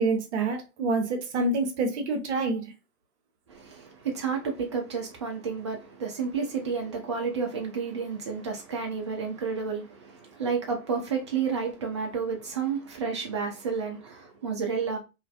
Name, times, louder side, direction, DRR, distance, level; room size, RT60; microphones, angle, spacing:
voice 1, 0.0-2.6, right 3 dB, 50° right, 0.8 m, -27 dB
voice 2, 3.5-15.0, right 5 dB, 25° right, 0.3 m, -31 dB
2.5 x 2.5 x 2.3 m
figure-of-eight pair, 115°, 45 cm